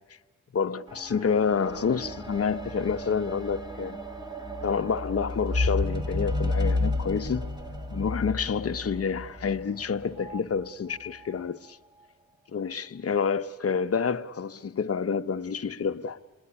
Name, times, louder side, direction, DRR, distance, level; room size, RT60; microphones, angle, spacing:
voice 1, 0.5-4.0 4.6-7.5 7.9-11.8 12.5-16.2, left 6 dB, 45° left, 0.9 m, -28 dB
sound 1, 0.9-10.4 11.2-11.3, left 2 dB, 15° right, 1.8 m, -32 dB
28.5 x 20.5 x 9.9 m
cardioid pair, 75°, 33 cm